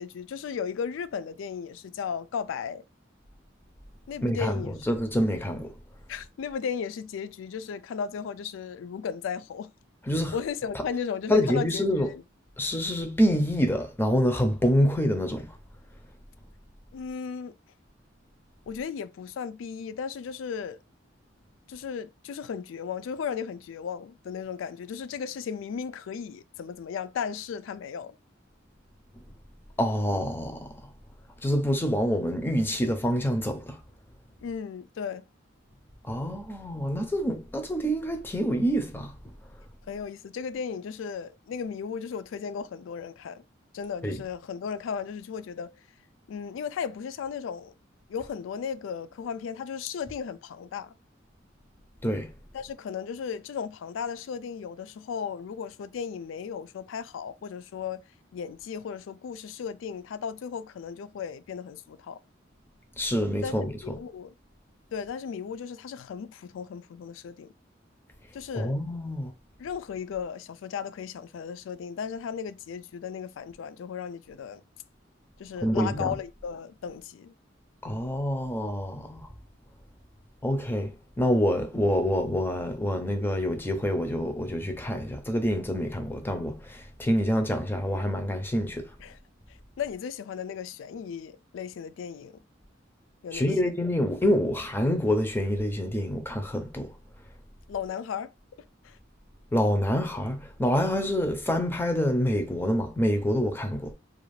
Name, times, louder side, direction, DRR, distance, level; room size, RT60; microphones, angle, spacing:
voice 1, 0.0-2.8 4.1-5.0 6.1-9.7 10.3-12.2 16.9-17.5 18.7-20.8 21.7-28.2 34.4-35.2 39.9-43.4 43.7-45.7 46.3-47.7 48.1-50.9 52.5-58.0 58.3-62.2 63.4-63.6 63.8-64.3 64.9-67.5 68.3-68.8 69.6-74.6 75.4-77.3 89.0-89.2 89.8-92.4 93.2-93.7 97.7-98.3 98.8-99.0, left 7 dB, 85° left, 0.3 m, -35 dB
voice 2, 4.2-5.7 10.1-10.3 10.7-10.8 11.3-12.1 12.6-15.6 29.8-30.9 31.4-33.8 36.0-39.1 44.0-44.2 52.0-52.3 63.0-64.0 68.5-69.3 75.6-76.1 77.8-79.3 80.4-88.9 93.3-96.9 99.5-103.9, equal, 10° left, 0.4 m, -27 dB
2.5 x 2.4 x 3.1 m
head